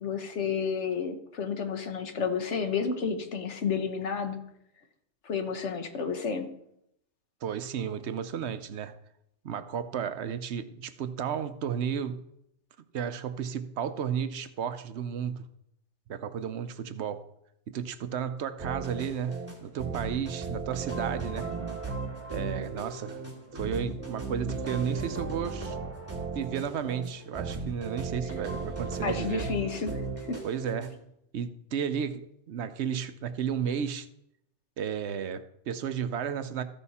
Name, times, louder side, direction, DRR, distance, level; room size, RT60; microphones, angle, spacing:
voice 1, 0.0-4.4 5.2-6.5 29.0-30.4, left 6 dB, 85° left, 1.4 m, -31 dB
voice 2, 7.4-8.9 9.4-12.2 12.9-15.4 16.1-17.3 17.7-21.5 22.3-23.2 23.5-25.8 26.3-29.5 30.4-30.9 31.3-34.1 34.8-36.6, right 8 dB, 75° right, 1.0 m, -33 dB
sound 1, 18.6-30.9, right 3 dB, 10° right, 2.3 m, -36 dB
15.0 x 5.5 x 4.2 m
omnidirectional pair, 1.2 m